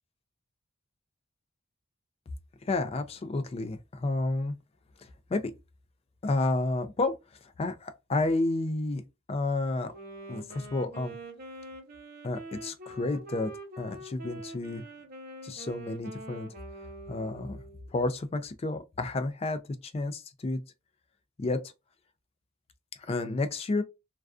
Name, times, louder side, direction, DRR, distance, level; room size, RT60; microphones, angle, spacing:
voice 1, 2.6-4.5 5.0-5.5 6.2-7.2 7.6-9.0 9.3-9.9 10.3-11.1 12.2-14.8 15.4-16.5 17.1-17.6 17.9-20.6 21.4-21.6 23.0-23.8, left 2 dB, 30° left, 0.3 m, -31 dB
Wind instrument woodwind instrument, 9.9-17.9, right 2 dB, 45° right, 0.7 m, -45 dB
2.4 x 2.3 x 2.3 m
head